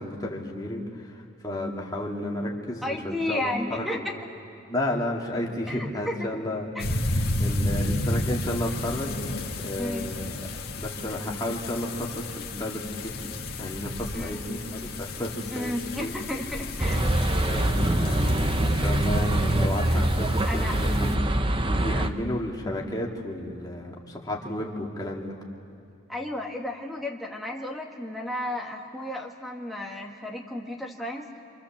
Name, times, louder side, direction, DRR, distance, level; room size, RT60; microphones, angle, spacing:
voice 1, 0.0-3.9 4.7-6.7 7.1-9.2 9.6-10.5 10.8-13.3 13.6-16.1 17.4-18.4 18.7-21.2 21.6-25.4, left 1 dB, 15° left, -2 dB, 2.5 m, -32 dB
voice 2, 2.8-4.2 5.7-6.4 6.8-6.9 9.8-10.1 14.1-14.4 15.5-17.1 20.4-20.8 26.1-31.3, left 1 dB, ahead, 1 dB, 1.9 m, -33 dB
sound 1, 6.8-21.1, left 1 dB, 45° left, 2.2 m, -32 dB
sound 2, 16.8-22.1, right 1 dB, 25° right, 0.8 m, -24 dB
28.0 x 27.0 x 7.4 m, 2.5 s
head